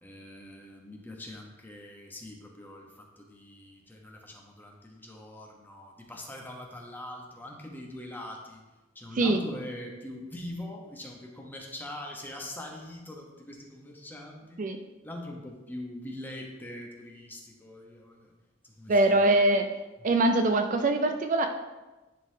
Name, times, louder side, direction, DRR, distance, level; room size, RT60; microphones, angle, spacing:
voice 1, 0.0-8.6 8.9-14.7 15.0-18.3 18.6-18.9 20.0-20.1, left 1 dB, 10° left, 0 dB, 0.9 m, -43 dB
voice 2, 18.9-19.7 20.0-21.5, right 2 dB, 40° right, 5 dB, 0.4 m, -23 dB
10.0 x 3.9 x 2.7 m, 1.1 s
head